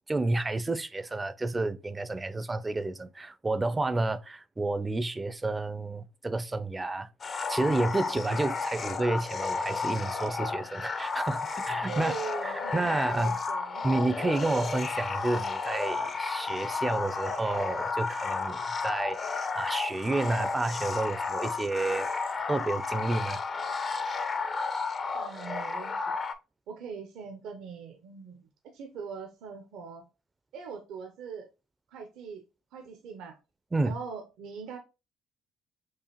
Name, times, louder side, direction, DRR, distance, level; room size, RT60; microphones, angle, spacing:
voice 1, 0.1-7.1 7.5-12.1 12.4-13.4 13.8-22.1 22.5-23.4 33.7-34.0, right 2 dB, 20° right, 0.4 m, -30 dB
sound 1, 7.2-26.3, left 4 dB, 40° left, 0.6 m, -32 dB
voice 2, 11.9-13.9 25.1-26.2 26.7-30.1 30.5-31.5 31.9-32.4 32.7-33.4 33.8-34.8, right 6 dB, 75° right, 0.6 m, -41 dB
4.6 x 2.5 x 2.9 m
supercardioid pair, 75°, 0 cm